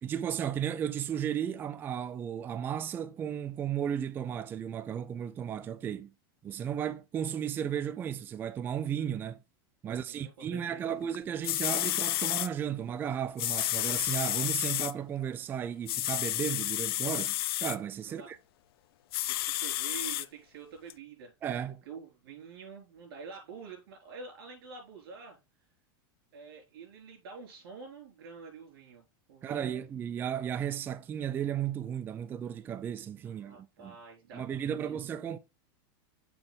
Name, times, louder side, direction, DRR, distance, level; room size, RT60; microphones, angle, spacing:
voice 1, 0.0-6.1 6.4-9.4 9.8-17.3 17.6-18.4 21.4-21.8 29.4-33.6 33.8-34.0 34.3-35.4, right 9 dB, 15° right, 0.4 m, -34 dB
voice 2, 9.8-11.0 18.0-18.3 19.3-21.3 21.9-25.4 26.3-29.0 29.3-29.8 33.2-35.0, right 5 dB, 75° right, 4.2 m, -47 dB
sound 1, 11.1-11.2 11.4-12.5 13.4-14.9 15.9-17.8 19.1-20.2 20.9-21.0, left 15 dB, 85° left, 0.4 m, -31 dB
6.9 x 5.3 x 3.9 m
supercardioid pair, 155°, 12 cm